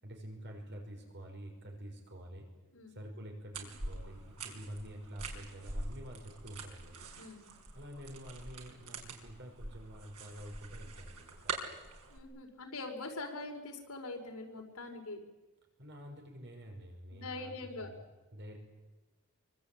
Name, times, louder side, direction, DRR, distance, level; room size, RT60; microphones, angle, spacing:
voice 1, 0.0-2.5 2.9-7.0 7.7-11.7 15.8-18.1 18.3-18.6, equal, 55° right, 2 dB, 5.8 m, -48 dB
sound 1, 3.5-12.2, right 3 dB, 85° right, 5.1 m, -44 dB
voice 2, 7.2-7.5 12.1-15.2 17.1-17.9, left 2 dB, 75° left, 2 dB, 5.1 m, -43 dB
27.0 x 24.5 x 9.0 m, 1.2 s
head